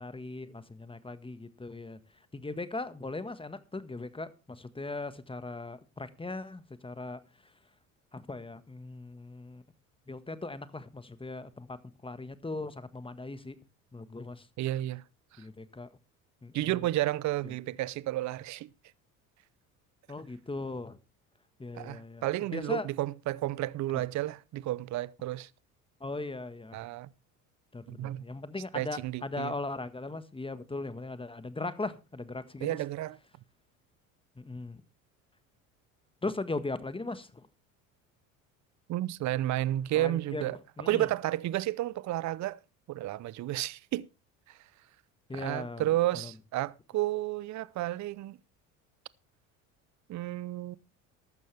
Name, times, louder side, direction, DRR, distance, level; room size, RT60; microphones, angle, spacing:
voice 1, 0.0-2.0 2.3-7.2 8.1-9.6 10.1-13.6 13.9-14.5 15.4-15.9 16.4-16.8 17.4-17.5 20.1-21.0 21.6-22.2 22.5-22.9 26.0-26.8 27.7-32.8 34.3-34.8 36.2-37.5 39.9-40.5 40.8-41.1 45.3-45.8 46.1-46.3, left 2 dB, 15° left, 1.5 m, -39 dB
voice 2, 14.6-15.0 16.5-18.7 21.7-25.5 26.7-27.1 27.9-28.2 28.7-29.5 32.6-33.2 38.9-40.6 40.9-42.6 42.9-44.1 45.3-48.4 50.1-50.8, right 15 dB, 45° right, 0.7 m, -31 dB
15.0 x 12.0 x 3.4 m
hypercardioid pair, 75°, 39 cm